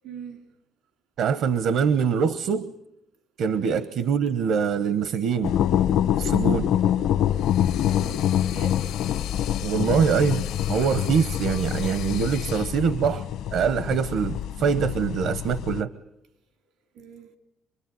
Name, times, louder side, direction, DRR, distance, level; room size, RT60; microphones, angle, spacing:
voice 1, 0.0-0.4 3.6-3.9 7.8-8.9 16.9-17.3, right 4 dB, 80° right, 3.2 m, -41 dB
voice 2, 1.2-2.7 3.4-5.5 6.2-6.7 9.6-13.3 13.5-15.9, right 6 dB, 65° right, 0.9 m, -24 dB
sound 1, 5.4-15.8, left 10 dB, 75° left, 1.1 m, -25 dB
sound 2, 7.3-12.8, left 12 dB, 90° left, 1.2 m, -40 dB
26.5 x 21.5 x 9.3 m
cardioid pair, 155°, 0 cm